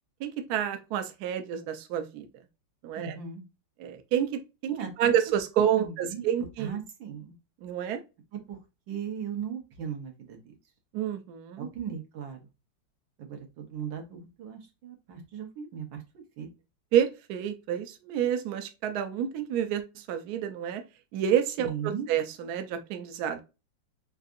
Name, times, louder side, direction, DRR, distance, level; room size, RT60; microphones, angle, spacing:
voice 1, 0.2-2.3 2.8-3.1 3.8-6.7 7.6-8.0 10.9-11.7 16.9-20.8 21.1-23.4, right 9 dB, 70° right, 7 dB, 1.0 m, -29 dB
voice 2, 3.0-3.4 4.7-5.1 5.8-6.3 6.6-7.3 8.3-8.6 8.9-10.5 11.6-12.4 13.2-16.5 21.6-22.1, right 7 dB, 85° right, 3 dB, 1.8 m, -38 dB
4.1 x 3.6 x 2.5 m, 0.27 s
omnidirectional pair, 2.0 m